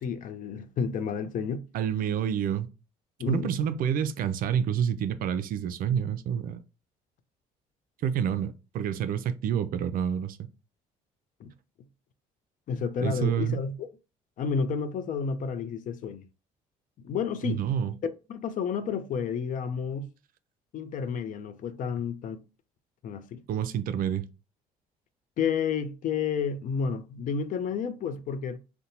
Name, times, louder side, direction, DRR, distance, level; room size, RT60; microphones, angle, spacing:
voice 1, 0.0-1.6 3.2-3.5 11.4-11.5 12.7-13.7 14.4-16.3 17.0-17.6 18.0-20.1 20.7-22.5 23.0-23.4 25.4-28.6, left 6 dB, 55° left, 0.5 m, -31 dB
voice 2, 1.7-2.7 3.3-6.6 8.0-10.4 13.0-13.6 17.4-17.9 23.5-24.2, right 8 dB, 60° right, 0.4 m, -28 dB
2.6 x 2.1 x 2.9 m
supercardioid pair, 75°, 17 cm